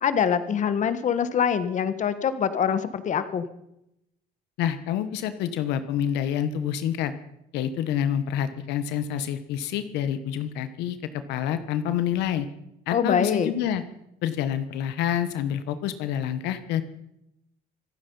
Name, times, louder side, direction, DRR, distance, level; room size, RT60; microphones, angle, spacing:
voice 1, 0.0-3.5 12.9-13.5, left 7 dB, 45° left, 12 dB, 1.3 m, -24 dB
voice 2, 4.6-7.1 7.5-11.0 11.3-12.5 12.9-13.8 14.2-16.8, left 9 dB, 90° left, 11 dB, 1.2 m, -27 dB
26.0 x 9.2 x 5.5 m, 0.82 s
cardioid pair, 110°, 17 cm